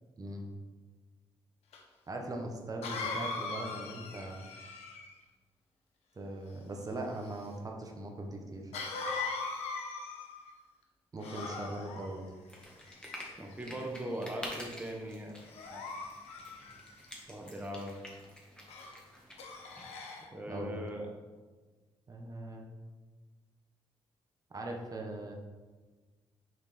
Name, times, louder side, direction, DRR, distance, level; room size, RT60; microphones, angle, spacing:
voice 1, 0.2-0.5 2.1-4.4 6.2-8.7 11.1-12.3 20.5-20.8 22.1-22.6 24.5-25.3, right 2 dB, 35° right, 2 dB, 1.2 m, -40 dB
Cough, 1.7-1.8 2.8-5.2 8.7-10.5 11.2-12.1 12.9-13.5 14.1-14.4 15.4-17.1 18.7-18.9 19.4-20.3, left 4 dB, 80° left, 1.1 m, -40 dB
sound 1, 12.5-19.8, equal, 10° left, 1.8 m, -49 dB
voice 2, 13.4-15.8 17.3-18.0 20.3-21.1, equal, 15° right, 0 dB, 1.1 m, -40 dB
6.6 x 4.4 x 4.3 m, 1.3 s
cardioid pair, 70°, 11 cm